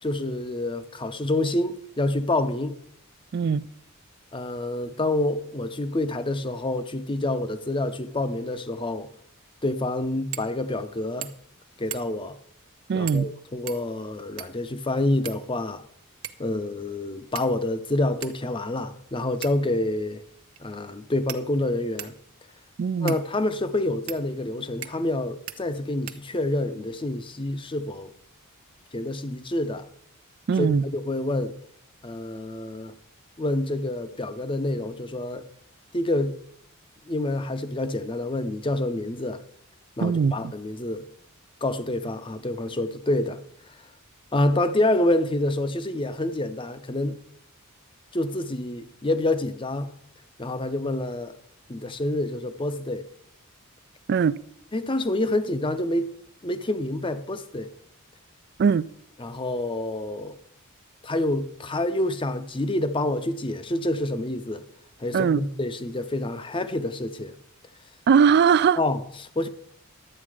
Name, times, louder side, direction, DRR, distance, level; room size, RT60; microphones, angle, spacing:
voice 1, 0.0-2.8 4.3-9.1 9.6-11.3 11.8-12.4 12.9-15.8 16.4-20.2 20.6-22.1 23.0-28.1 28.9-29.9 30.6-31.6 32.0-32.9 33.4-35.5 35.9-36.4 37.1-39.4 40.0-41.1 41.6-43.4 44.3-47.2 48.1-49.9 50.4-51.4 51.7-53.1 54.7-56.1 56.4-57.7 59.2-60.4 61.0-64.6 65.0-67.4 68.8-69.5, left 1 dB, 25° left, 0.7 m, -27 dB
voice 2, 3.3-3.6 12.9-13.3 22.8-23.2 30.5-30.8 40.0-40.5 54.1-54.4 58.6-58.9 65.1-65.4 68.1-68.8, right 6 dB, 50° right, 0.3 m, -20 dB
sound 1, 10.3-10.5 10.8-10.9 11.2-11.5 11.9-12.3 13.1-13.3 13.7-14.7 15.2-15.8 16.2-16.5 17.4-17.8 18.2-18.4 19.4-19.8 20.6-20.7 21.3-22.2 23.1-23.3 24.1-24.2 24.8-25.2 25.5-25.6 26.1-26.6, right 12 dB, 70° right, 0.8 m, -39 dB
11.0 x 8.4 x 4.9 m
head